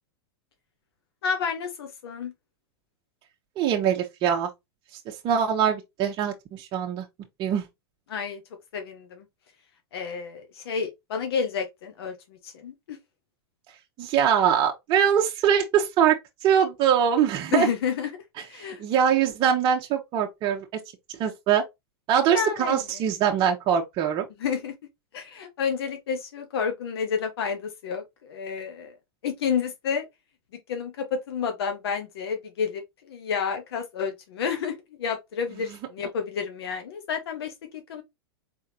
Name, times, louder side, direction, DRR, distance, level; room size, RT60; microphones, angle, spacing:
voice 1, 1.2-2.3 8.1-8.4 8.7-9.3 9.9-13.0 17.5-18.1 18.4-18.8 22.3-22.8 24.4-24.7 25.1-28.9 29.2-30.1 30.7-38.0, left 6 dB, 75° left, 1.1 m, -30 dB
voice 2, 3.6-4.5 5.1-7.0 7.4-7.6 14.0-17.7 18.6-20.7 21.1-21.6 22.1-24.3, right 8 dB, 35° right, 0.9 m, -23 dB
4.4 x 3.6 x 2.7 m
hypercardioid pair, 120°, 13 cm